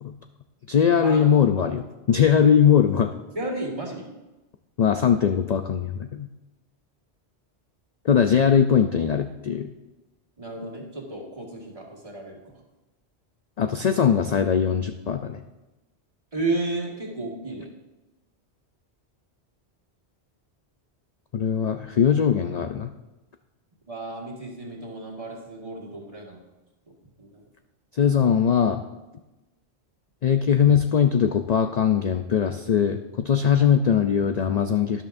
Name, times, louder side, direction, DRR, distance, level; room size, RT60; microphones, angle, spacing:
voice 1, 0.7-3.1 4.8-6.3 8.0-9.7 13.6-15.4 21.3-22.9 27.9-28.8 30.2-35.0, left 8 dB, 50° left, 7 dB, 0.5 m, -21 dB
voice 2, 3.3-4.1 10.4-12.6 16.3-17.7 23.9-26.5 27.2-27.5, right 2 dB, 30° right, -1 dB, 1.9 m, -33 dB
12.5 x 11.0 x 2.6 m, 1.1 s
omnidirectional pair, 1.1 m